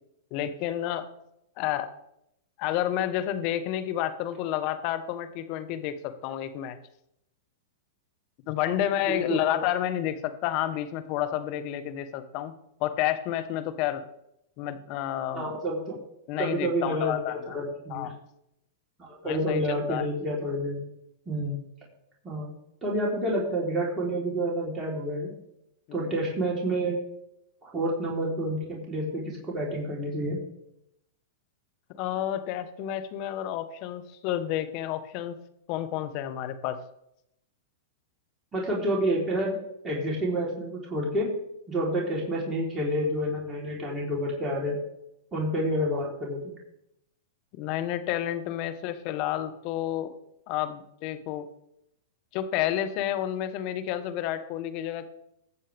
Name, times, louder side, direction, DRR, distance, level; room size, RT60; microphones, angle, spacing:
voice 1, 0.3-1.0 1.6-1.9 2.6-6.8 8.5-12.5 12.8-14.0 14.6-15.6 16.3-17.6 17.9-18.2 19.2-20.0 25.9-26.1 31.9-35.4 35.7-36.8 47.5-50.1 50.5-51.5 52.3-55.1, left 12 dB, 45° left, 10 dB, 1.3 m, -30 dB
voice 2, 9.1-9.6 15.3-16.0 16.4-18.1 19.0-20.8 21.3-21.6 22.2-22.5 22.8-25.3 25.9-27.0 27.6-30.4 38.5-39.6 39.8-41.3 41.7-44.7 45.3-46.5, equal, 20° right, -3 dB, 3.8 m, -29 dB
21.5 x 7.4 x 3.5 m, 0.80 s
hypercardioid pair, 115°, 0 cm